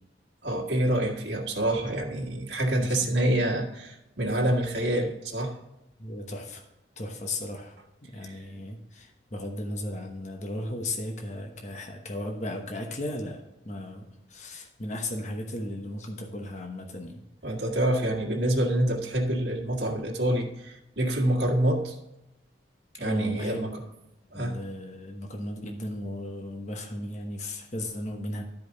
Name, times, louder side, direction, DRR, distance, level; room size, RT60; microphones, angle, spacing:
voice 1, 0.4-5.6 8.2-8.4 17.4-22.0 23.0-23.9 24.3-24.6, right 1 dB, 65° right, -1 dB, 1.7 m, -27 dB
voice 2, 6.0-6.6 7.0-7.8 8.0-17.2 23.0-23.7 24.3-28.4, left 1 dB, 40° left, 2 dB, 1.1 m, -36 dB
12.0 x 5.1 x 4.0 m, 0.93 s
head